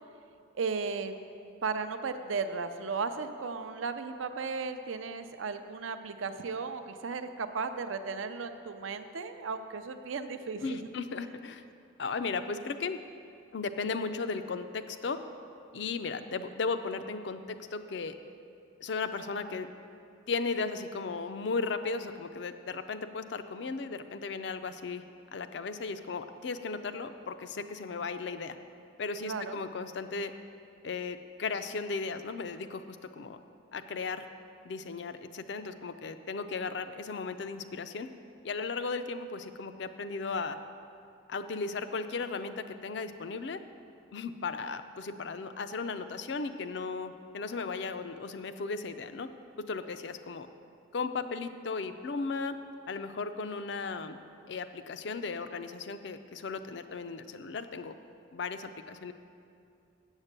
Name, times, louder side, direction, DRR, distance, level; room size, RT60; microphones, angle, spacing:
voice 1, 0.5-1.2 1.6-10.9 29.2-29.6, right 4 dB, 80° right, 9 dB, 0.5 m, -35 dB
voice 2, 10.6-11.6 12.0-13.0 13.5-15.2 15.7-17.4 17.7-18.1 18.8-19.7 20.3-25.0 25.3-28.6 29.0-30.3 30.8-33.4 33.7-34.2 34.6-38.1 38.4-40.6 41.3-43.6 44.1-49.3 49.7-50.5 50.9-52.6 52.9-54.2 54.5-57.9 58.3-59.1, left 4 dB, 60° left, 10 dB, 0.4 m, -36 dB
8.1 x 7.2 x 6.6 m, 2.5 s
head